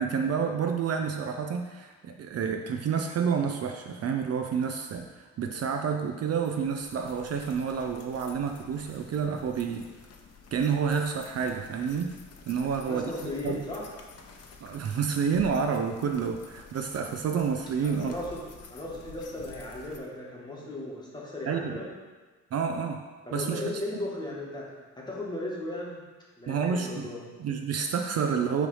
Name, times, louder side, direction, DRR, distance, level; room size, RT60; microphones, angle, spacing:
voice 1, 0.0-9.9 10.5-12.1 12.5-13.6 14.6-18.2 21.5-21.8 22.5-23.0 23.3-23.8 26.5-27.1 27.4-28.7, right 6 dB, 55° right, 5 dB, 0.5 m, -29 dB
sound 1, 6.3-20.0, left 5 dB, 55° left, 0.7 m, -50 dB
voice 2, 12.6-13.9 17.8-18.4 18.7-21.9 23.2-26.0 26.4-27.3, left 1 dB, 15° left, -4 dB, 1.3 m, -36 dB
6.0 x 3.2 x 5.3 m, 1.3 s
cardioid pair, 130°, 30 cm